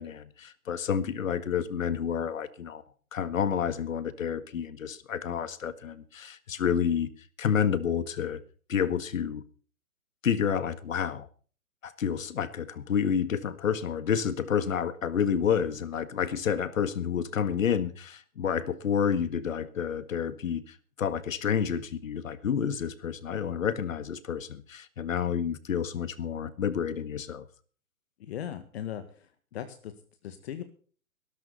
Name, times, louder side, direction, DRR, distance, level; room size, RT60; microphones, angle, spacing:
voice 1, 0.0-2.8 3.1-7.1 7.4-8.4 8.7-9.4 10.2-11.3 11.8-27.5, left 7 dB, 65° left, 1.8 m, -29 dB
voice 2, 28.2-29.9 30.2-30.6, left 10 dB, 45° left, 1.9 m, -38 dB
17.0 x 13.0 x 4.3 m
hypercardioid pair, 140°, 43 cm